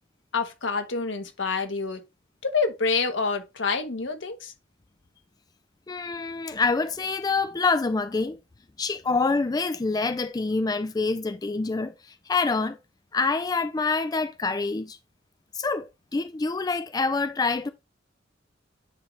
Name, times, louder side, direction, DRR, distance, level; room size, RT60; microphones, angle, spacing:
voice 1, 0.3-2.0 2.4-4.5, left 4 dB, 80° left, 1.4 m, -27 dB
voice 2, 5.9-8.4 8.8-12.8 13.1-15.0 15.5-17.7, left 4 dB, 20° left, 0.4 m, -26 dB
9.5 x 3.9 x 3.2 m
head